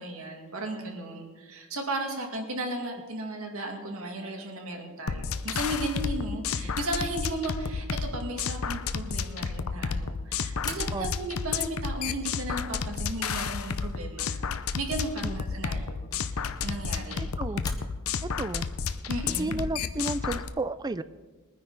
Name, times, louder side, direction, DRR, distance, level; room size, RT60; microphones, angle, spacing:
voice 1, 0.0-14.4 14.8-17.3 19.1-19.6, right 1 dB, 65° right, 2 dB, 2.2 m, -35 dB
sound 1, 5.1-20.5, left 5 dB, 70° left, 0.6 m, -31 dB
sound 2, 10.6-11.3 12.0-12.6 15.8-16.8 17.6-18.0 19.6-20.1, left 4 dB, 20° left, 1.1 m, -42 dB
voice 2, 17.1-17.6 18.2-18.7 19.3-21.0, right 2 dB, 20° right, 14 dB, 0.4 m, -32 dB
21.0 x 9.8 x 4.0 m, 1.3 s
head